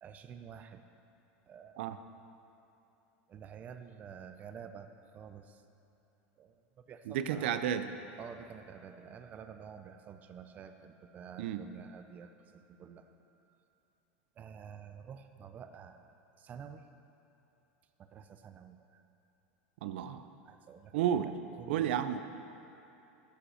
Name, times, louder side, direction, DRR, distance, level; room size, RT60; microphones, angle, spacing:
voice 1, 0.0-0.8 1.5-1.8 3.3-5.6 6.4-6.6 6.9-7.6 8.2-13.1 13.5-13.6 14.4-16.0 16.4-16.8 18.1-19.0 20.4-21.3 21.6-22.1, right 7 dB, 25° right, 8 dB, 0.5 m, -49 dB
voice 2, 7.1-7.9 11.4-11.6 19.8-20.2 20.9-21.3 21.7-22.2, right 10 dB, 80° right, 10 dB, 0.5 m, -32 dB
13.0 x 5.5 x 5.7 m, 2.9 s
supercardioid pair, 145°, 6 cm